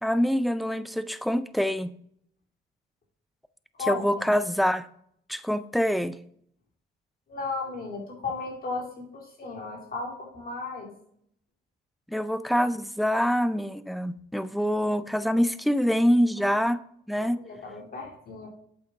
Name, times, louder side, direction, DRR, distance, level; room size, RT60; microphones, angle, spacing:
voice 1, 0.0-1.9 3.9-4.9 5.3-6.2 12.1-16.8 17.1-17.4, equal, ahead, 0.5 m, -25 dB
voice 2, 3.8-4.2 7.3-10.9 17.2-18.5, left 4 dB, 50° left, 2.5 m, -35 dB
8.2 x 7.9 x 3.5 m
cardioid pair, 90°, 20 cm